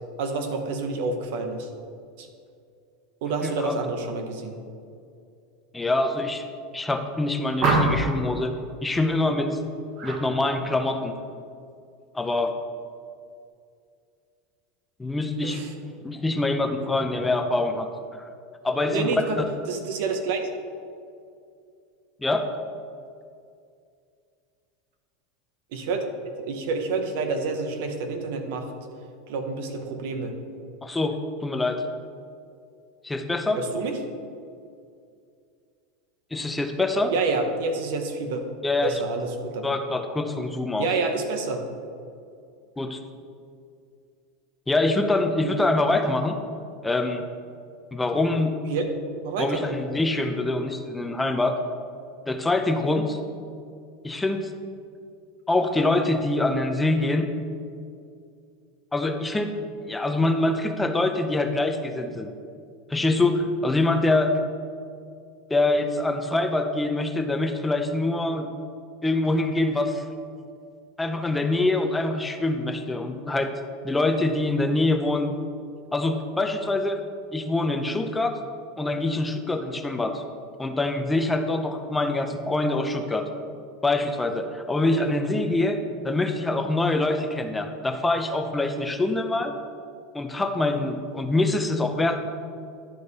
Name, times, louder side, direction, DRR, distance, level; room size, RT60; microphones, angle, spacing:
voice 1, 0.2-1.7 2.2-2.3 3.2-4.6 15.4-15.7 18.9-19.4 19.7-20.5 25.7-26.1 26.4-28.7 29.3-30.3 33.6-34.0 37.1-38.4 38.8-39.8 40.8-41.6 45.4-45.5 48.6-48.8 49.2-49.6 85.0-85.1, right 4 dB, 65° right, 5 dB, 1.0 m, -28 dB
voice 2, 3.4-3.8 5.7-6.4 6.7-8.5 8.8-9.6 10.0-11.1 12.1-12.5 15.0-15.6 16.0-17.9 18.2-18.3 18.6-19.2 22.2-22.5 30.8-31.2 31.4-31.8 33.0-33.6 36.3-37.1 38.6-38.9 39.6-40.9 42.8-43.0 44.7-46.4 46.8-47.2 47.9-48.5 49.4-51.6 52.3-53.2 54.0-54.5 55.5-57.3 58.9-59.5 59.9-62.3 62.9-64.3 65.5-68.5 69.0-70.0 71.0-73.5 73.8-75.3 75.9-77.0 77.3-78.4 78.8-80.2 80.6-83.3 83.8-85.8 86.0-89.5 90.1-92.3, left 2 dB, 10° left, 6 dB, 0.6 m, -24 dB
sound 1, 7.6-8.2 10.0-10.2 10.6-11.0, right 2 dB, 40° right, 1.1 m, -24 dB
10.5 x 5.2 x 4.0 m, 2.4 s
supercardioid pair, 145°, 0 cm